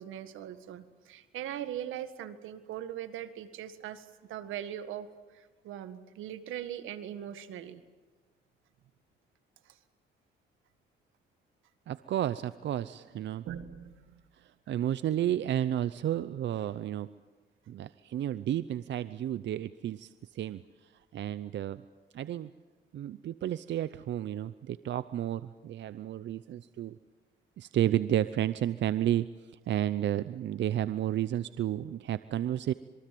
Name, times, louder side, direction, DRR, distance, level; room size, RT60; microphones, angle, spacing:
voice 1, 0.0-7.8 9.7-9.8 13.5-14.2 14.7-14.8, right 10 dB, 85° right, 11 dB, 1.7 m, -41 dB
voice 2, 11.9-13.5 14.3-17.1 17.7-21.8 22.1-22.5 22.9-27.0 27.6-32.7, right 11 dB, 65° right, 14 dB, 0.7 m, -32 dB
26.5 x 23.0 x 7.7 m, 1.3 s
cardioid pair, 90°, 20 cm